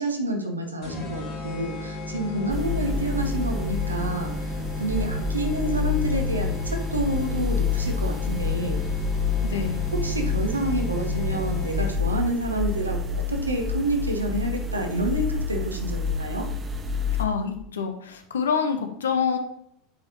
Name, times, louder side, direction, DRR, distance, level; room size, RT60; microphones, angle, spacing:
voice 1, 0.0-8.8 9.9-16.5, right 1 dB, 80° right, 3 dB, 1.1 m, -28 dB
sound 1, 0.8-12.2, left 1 dB, 50° left, 2.0 m, -35 dB
sound 2, 2.5-17.2, left 4 dB, 25° right, 0.7 m, -28 dB
voice 2, 9.4-9.8 17.2-19.4, left 6 dB, 70° left, 6 dB, 0.9 m, -26 dB
8.3 x 5.0 x 3.0 m, 0.73 s
figure-of-eight pair, 80°, 0 cm